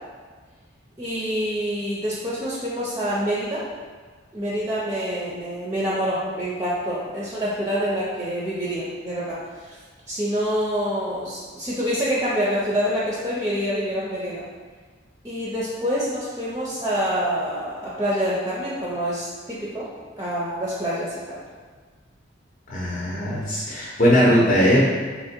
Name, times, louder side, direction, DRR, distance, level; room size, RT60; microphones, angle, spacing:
voice 1, 1.0-3.7 4.3-9.8 10.1-14.4 15.2-19.9 20.2-21.4, equal, 20° right, -7 dB, 0.5 m, -26 dB
voice 2, 22.7-24.8, equal, 45° left, -6 dB, 0.8 m, -19 dB
3.7 x 2.9 x 4.3 m, 1.5 s
head